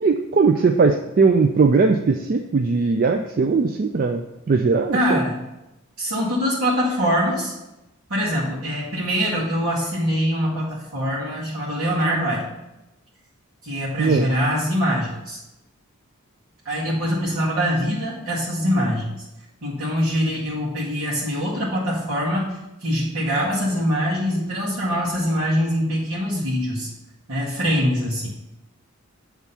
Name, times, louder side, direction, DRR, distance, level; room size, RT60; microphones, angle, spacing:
voice 1, 0.0-5.2 14.0-14.3, right 4 dB, 40° right, 5 dB, 0.3 m, -19 dB
voice 2, 4.9-5.4 6.0-7.5 8.1-12.5 13.6-15.4 16.7-19.2 19.6-22.5 22.8-26.9 27.3-28.3, equal, 80° right, -8 dB, 2.0 m, -23 dB
7.4 x 3.6 x 5.5 m, 0.95 s
head